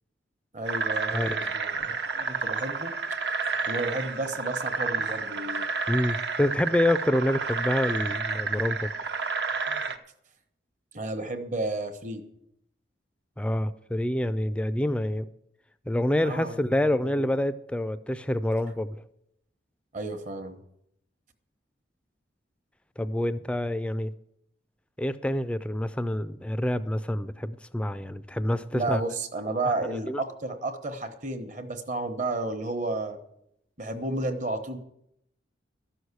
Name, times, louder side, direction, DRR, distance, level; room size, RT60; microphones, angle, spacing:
voice 1, 0.5-2.9 3.7-5.7 10.9-12.2 16.2-17.3 19.9-20.6 28.7-33.2 33.8-34.8, right 2 dB, 40° right, 7 dB, 1.1 m, -32 dB
sound 1, 0.7-10.0, right 4 dB, 60° right, 0.8 m, -30 dB
voice 2, 1.1-1.5 5.9-8.9 13.4-15.3 15.9-19.0 23.0-24.1 25.0-29.0 29.6-30.2, left 1 dB, 5° left, 13 dB, 0.4 m, -27 dB
13.0 x 6.4 x 8.2 m, 0.78 s
head